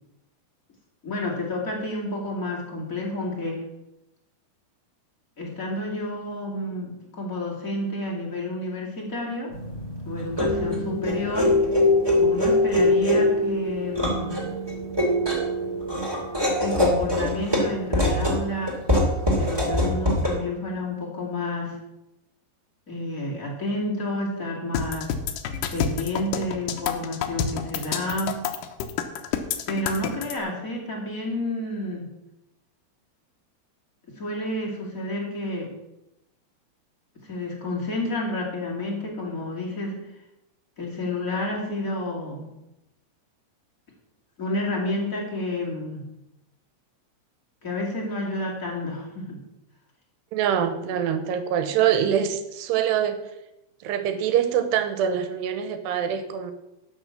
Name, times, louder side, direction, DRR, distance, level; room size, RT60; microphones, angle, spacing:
voice 1, 1.0-3.6 5.4-9.5 10.0-11.6 12.2-14.3 16.6-18.8 19.3-21.8 22.9-25.1 25.7-28.4 29.7-32.1 34.2-35.7 37.1-40.0 40.8-42.5 44.4-46.1 47.6-49.4, left 1 dB, 25° left, -3 dB, 2.0 m, -30 dB
sound 1, 9.5-20.3, left 1 dB, 10° right, 1.1 m, -23 dB
sound 2, 24.7-30.3, left 8 dB, 75° left, 2.2 m, -28 dB
voice 2, 50.3-53.2 53.8-56.5, right 9 dB, 85° right, 10 dB, 3.0 m, -24 dB
12.0 x 6.3 x 7.1 m, 0.92 s
omnidirectional pair, 4.8 m